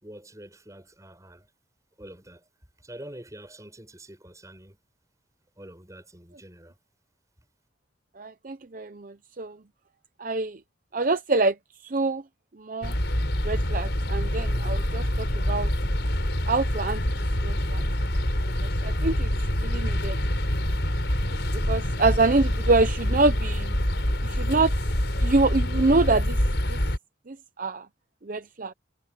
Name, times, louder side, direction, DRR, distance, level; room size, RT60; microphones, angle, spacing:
voice 1, 0.0-1.5 2.0-2.4 2.8-4.8 5.6-6.8, right 1 dB, 20° right, 6.8 m, -45 dB
voice 2, 8.2-9.6 10.2-10.6 10.9-11.6 11.8-12.2 12.6-12.9 13.4-15.7 16.5-17.1 17.4-17.8 18.6-20.2 21.5-23.8 24.2-24.7 25.2-26.4 26.7-26.8 27.3-27.9 28.2-28.7, right 3 dB, 45° right, 0.7 m, -26 dB
sound 1, 12.8-27.0, equal, 70° left, 5.4 m, -26 dB
head